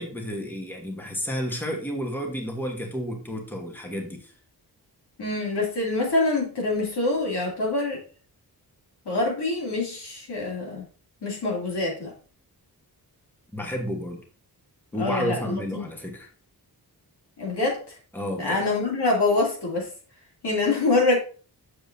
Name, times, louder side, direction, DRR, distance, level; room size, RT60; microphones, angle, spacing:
voice 1, 0.0-4.3 13.5-14.2 14.9-16.3 18.1-18.6, equal, 5° left, 1 dB, 1.2 m, -31 dB
voice 2, 5.2-8.0 9.0-10.8 11.2-12.1 15.0-15.9 17.4-18.0 18.4-19.9 20.4-21.2, left 2 dB, 80° left, -2 dB, 2.7 m, -25 dB
7.2 x 6.6 x 2.7 m, 0.38 s
wide cardioid pair, 130°, 40 cm